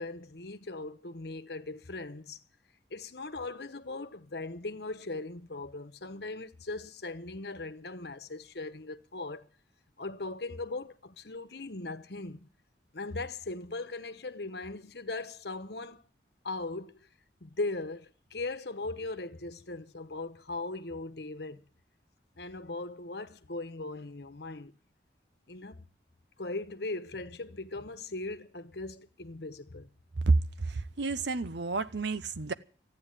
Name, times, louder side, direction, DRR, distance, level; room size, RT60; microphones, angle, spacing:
voice 1, 0.0-2.4 2.9-9.5 10.0-12.5 12.9-16.0 16.4-17.1 17.4-21.6 22.4-24.7 25.5-25.9 26.4-29.9, left 2 dB, 65° left, 1.1 m, -39 dB
voice 2, 30.2-32.5, right 3 dB, 75° right, 0.8 m, -29 dB
14.5 x 9.5 x 9.1 m
head